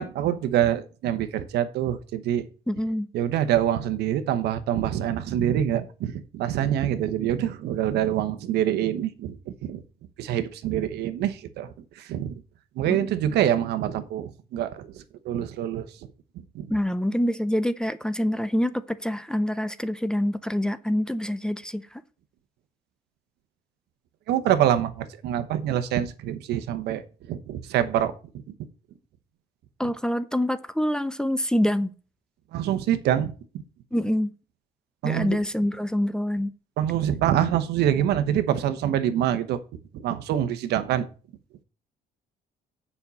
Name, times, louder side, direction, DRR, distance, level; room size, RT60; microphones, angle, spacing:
voice 1, 0.0-2.5 3.1-9.8 10.2-11.7 12.0-12.3 12.8-15.8 16.5-16.7 24.3-27.0 27.3-28.1 32.5-33.3 35.0-35.4 36.8-39.6 40.0-41.1, right 11 dB, 75° right, 1.1 m, -25 dB
voice 2, 2.7-3.1 12.9-13.1 16.7-22.0 29.8-31.9 33.9-34.3 35.0-36.5, left 1 dB, 5° left, 0.6 m, -26 dB
7.2 x 5.5 x 6.9 m
cardioid pair, 110°, 17 cm